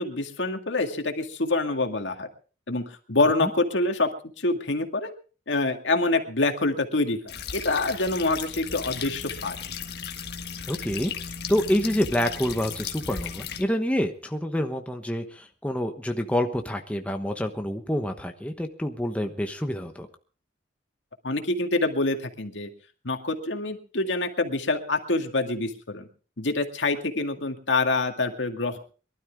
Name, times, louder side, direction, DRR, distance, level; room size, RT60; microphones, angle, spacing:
voice 1, 0.0-2.3 2.7-4.1 4.4-5.1 5.5-7.2 7.5-9.6 21.2-22.7 23.0-26.1 26.4-28.8, left 2 dB, 75° left, 5 dB, 2.1 m, -26 dB
sound 1, 7.3-13.6, left 7 dB, 55° left, 1.7 m, -36 dB
voice 2, 10.7-11.1 11.5-20.1, equal, 5° left, 5 dB, 1.1 m, -27 dB
23.0 x 12.5 x 3.7 m, 0.37 s
head